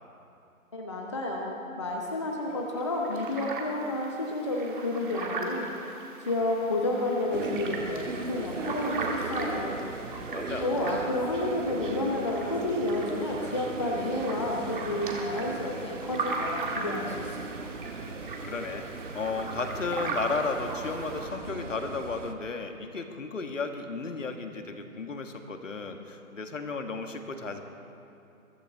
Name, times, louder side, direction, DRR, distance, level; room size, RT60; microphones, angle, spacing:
voice 1, 0.7-5.7 6.2-9.8 10.6-17.4 17.6-17.7, left 1 dB, 20° left, 0 dB, 0.8 m, -30 dB
sound 1, 2.0-2.1 2.5-2.6 2.8-21.3, right 3 dB, 35° right, 1.9 m, -39 dB
sound 2, 7.3-22.3, right 4 dB, 55° right, 1.2 m, -38 dB
voice 2, 10.3-10.7 18.1-18.8 19.1-27.6, left 4 dB, 55° left, 5 dB, 1.6 m, -34 dB
22.5 x 15.0 x 3.6 m, 2.8 s
figure-of-eight pair, 155°, 44 cm